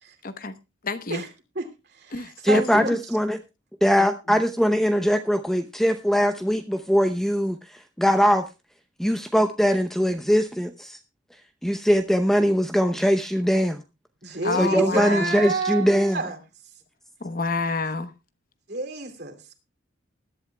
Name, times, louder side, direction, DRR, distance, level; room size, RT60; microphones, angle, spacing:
voice 1, 0.2-0.5 0.8-1.2 2.1-2.3 4.3-4.4 14.4-15.4 17.2-18.1, left 3 dB, 45° left, 11 dB, 1.0 m, -28 dB
voice 2, 1.9-3.0 14.2-16.4 18.7-19.6, right 3 dB, 55° right, 6 dB, 2.7 m, -30 dB
voice 3, 2.4-3.4 3.8-8.4 9.0-11.0 11.6-13.8 14.6-16.2, equal, ahead, 8 dB, 0.7 m, -21 dB
20.5 x 11.5 x 2.3 m, 0.26 s
head